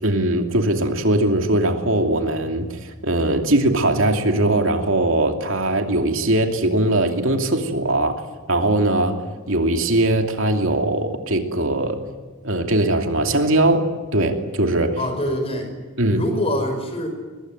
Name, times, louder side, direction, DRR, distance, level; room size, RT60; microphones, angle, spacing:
voice 1, 0.0-8.2 8.5-9.2 9.5-12.0 12.4-15.0 16.0-16.2, right 1 dB, 60° right, 4 dB, 2.8 m, -20 dB
voice 2, 15.0-15.7 16.1-17.1, equal, 25° left, 5 dB, 5.7 m, -24 dB
23.5 x 21.5 x 9.3 m, 1.4 s
head